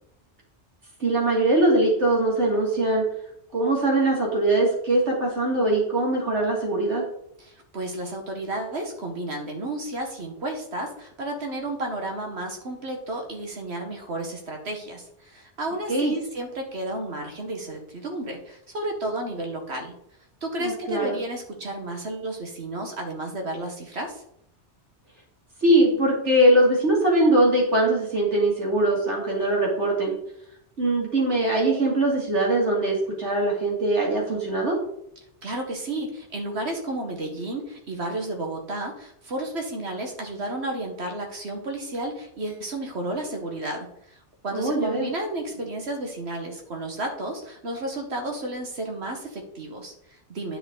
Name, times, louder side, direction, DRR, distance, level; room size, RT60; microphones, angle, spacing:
voice 1, 1.0-3.0 3.5-7.0 15.9-16.1 20.6-21.2 25.6-30.2 30.8-34.8 44.5-45.1, right 1 dB, 85° right, -3 dB, 3.2 m, -21 dB
voice 2, 7.4-19.9 20.4-24.2 35.4-44.2 44.4-50.6, right 1 dB, 70° right, 2 dB, 1.5 m, -32 dB
10.0 x 5.5 x 3.8 m, 0.73 s
omnidirectional pair, 1.2 m